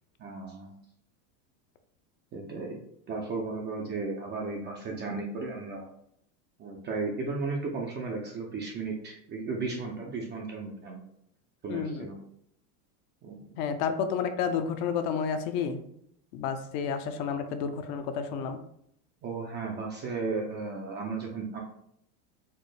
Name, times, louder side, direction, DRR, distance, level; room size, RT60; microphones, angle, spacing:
voice 1, 0.2-0.7 2.3-2.8 3.1-5.9 6.6-11.0 11.6-12.1 13.2-13.4 19.2-21.6, right 3 dB, 25° right, 0 dB, 0.4 m, -35 dB
voice 2, 11.7-12.1 13.6-15.8 16.3-18.6, left 6 dB, 50° left, 8 dB, 0.5 m, -30 dB
4.3 x 2.0 x 3.2 m, 0.71 s
supercardioid pair, 115°, 46 cm